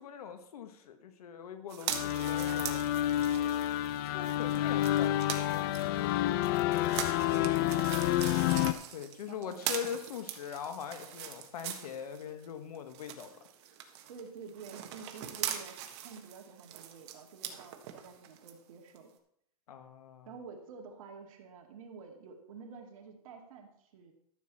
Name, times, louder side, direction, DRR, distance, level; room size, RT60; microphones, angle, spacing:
voice 1, 0.0-2.8 4.0-6.4 8.9-13.3 19.7-20.3, left 8 dB, 70° left, 8 dB, 1.6 m, -42 dB
sound 1, 1.7-12.5 12.7-18.5 19.0-19.1, right 10 dB, 40° right, 1.4 m, -42 dB
sound 2, 1.9-8.7, left 13 dB, 35° left, 0.4 m, -29 dB
voice 2, 6.8-7.8 9.3-9.7 14.1-19.1 20.3-24.1, right 5 dB, 60° right, 2 dB, 2.4 m, -50 dB
13.5 x 7.2 x 4.3 m, 0.72 s
hypercardioid pair, 150°, 20 cm